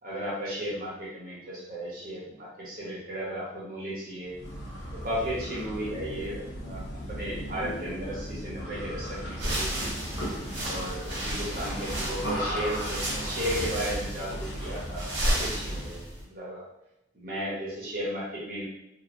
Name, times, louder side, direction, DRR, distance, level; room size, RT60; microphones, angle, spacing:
voice 1, 0.0-4.4 4.9-9.9 10.6-16.0 16.3-16.6 17.1-18.7, equal, 50° right, -6 dB, 1.1 m, -35 dB
sound 1, 4.3-16.0, equal, 70° left, 0.7 m, -36 dB
sound 2, 9.3-16.2, right 1 dB, 80° right, 1.0 m, -33 dB
3.0 x 2.7 x 2.6 m, 0.88 s
head